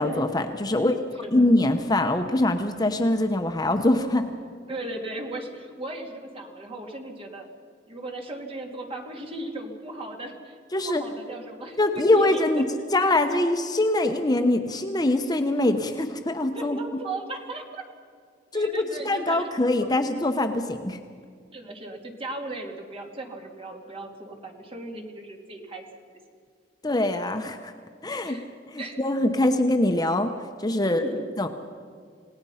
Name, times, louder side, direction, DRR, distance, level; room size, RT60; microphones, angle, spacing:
voice 1, 0.0-0.9 1.3-4.2 10.7-11.0 11.8-12.7 12.9-16.8 18.5-18.7 19.0-21.0 26.8-27.7 28.0-28.4 28.7-30.3 30.6-31.1 31.4-31.5, left 1 dB, 20° left, 6 dB, 0.9 m, -23 dB
voice 2, 0.7-1.5 4.7-7.5 7.9-12.6 16.5-17.8 18.5-19.5 21.5-26.2 28.2-28.4 28.8-29.0 30.8-31.3, right 2 dB, 30° right, 2 dB, 2.8 m, -37 dB
28.0 x 18.0 x 5.7 m, 2.1 s
head